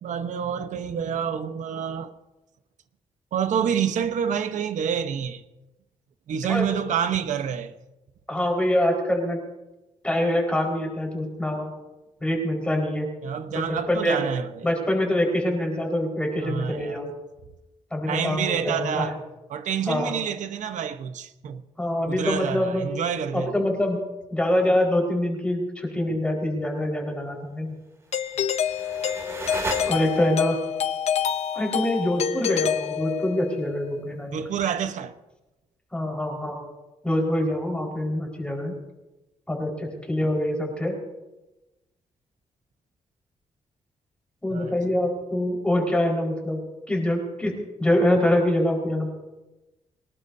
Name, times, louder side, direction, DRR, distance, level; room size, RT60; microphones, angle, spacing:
voice 1, 0.0-2.1 3.3-5.4 6.3-7.7 13.2-14.7 16.4-17.0 18.1-19.2 19.5-21.6 22.1-23.6 34.3-35.1 44.5-44.8, right 8 dB, 80° right, 1.0 m, -28 dB
voice 2, 6.4-7.0 8.3-9.4 10.0-11.7 12.2-13.1 13.5-14.3 14.6-17.1 17.9-19.1 19.9-20.2 21.8-22.9 23.3-24.0 24.3-27.7 29.9-30.6 31.5-34.4 35.9-36.6 37.0-38.7 39.5-41.0 44.4-46.6 46.9-49.1, left 1 dB, 10° left, 4.8 m, -25 dB
Doorbell, 28.1-33.5, left 9 dB, 60° left, 0.7 m, -27 dB
sound 1, 28.1-30.5, right 2 dB, 20° right, 2.3 m, -34 dB
23.5 x 19.5 x 2.7 m
wide cardioid pair, 145°, 12 cm